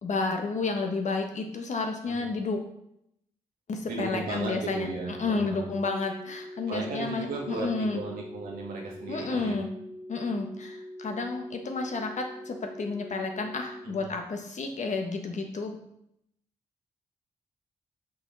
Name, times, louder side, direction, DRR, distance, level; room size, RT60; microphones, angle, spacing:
voice 1, 0.0-2.6 3.7-4.9 5.2-8.0 9.1-9.7 10.1-15.8, left 3 dB, 55° left, 4 dB, 1.3 m, -31 dB
voice 2, 3.9-5.7 6.7-9.6 13.8-14.1, right 3 dB, 85° right, -2 dB, 1.9 m, -35 dB
sound 1, 4.4-13.9, left 1 dB, 5° right, 0.5 m, -43 dB
5.8 x 5.6 x 4.1 m, 0.77 s
supercardioid pair, 60°, 14 cm